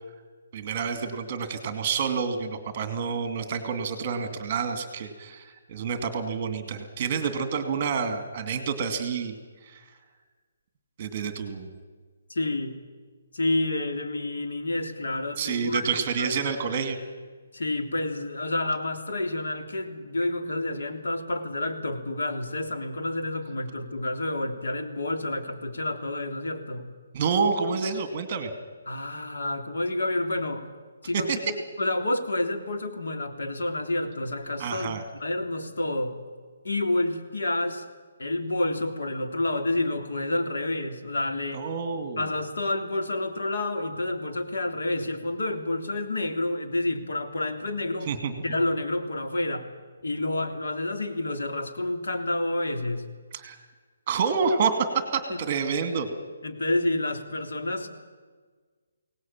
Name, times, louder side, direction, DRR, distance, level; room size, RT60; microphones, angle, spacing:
voice 1, 0.5-9.3 9.6-9.8 11.0-11.7 15.4-17.0 27.1-28.5 31.1-31.4 34.6-35.0 41.5-42.2 48.1-48.4 53.3-53.6 54.1-56.1, right 5 dB, 25° right, 8 dB, 2.5 m, -28 dB
voice 2, 12.3-12.8 13.3-16.5 17.5-26.9 28.9-30.7 31.0-36.2 36.6-37.8 38.2-41.6 42.2-48.1 48.4-49.7 50.0-53.1 55.3-55.4 56.4-57.9, left 2 dB, 90° left, 5 dB, 3.4 m, -29 dB
23.0 x 18.5 x 9.0 m, 1.5 s
hypercardioid pair, 175°, 0 cm